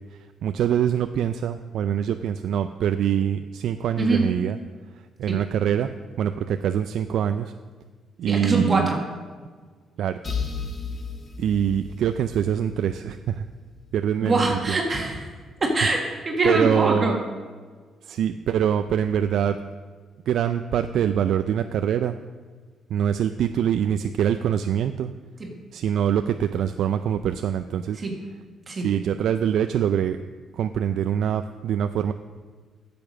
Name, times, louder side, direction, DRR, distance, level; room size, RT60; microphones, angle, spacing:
voice 1, 0.4-4.6 5.2-5.9 6.2-7.5 8.2-8.9 10.0-10.2 11.4-13.4 13.9-14.8 16.4-17.2 18.0-19.6 20.3-22.2 22.9-25.1 25.7-28.0 28.7-30.2 30.5-32.1, right 9 dB, 75° right, 9 dB, 0.4 m, -24 dB
voice 2, 4.0-4.3 5.3-5.4 8.3-9.0 14.2-15.2 15.6-17.2 28.0-28.2 28.7-28.9, right 2 dB, 35° right, 0 dB, 1.6 m, -23 dB
sound 1, 10.2-13.9, left 5 dB, 30° left, 1.5 m, -34 dB
10.5 x 6.9 x 6.4 m, 1.5 s
cardioid pair, 90°, 0 cm